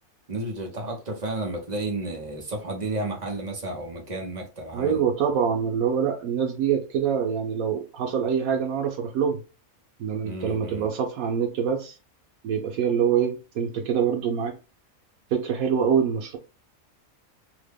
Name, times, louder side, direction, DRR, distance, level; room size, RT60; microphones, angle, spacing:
voice 1, 0.3-5.0 10.2-10.9, right 2 dB, 40° right, 0.7 m, -32 dB
voice 2, 4.7-9.4 10.0-12.0 12.4-14.6 15.3-16.4, right 7 dB, 90° right, 1.1 m, -25 dB
2.9 x 2.1 x 3.3 m
omnidirectional pair, 1.5 m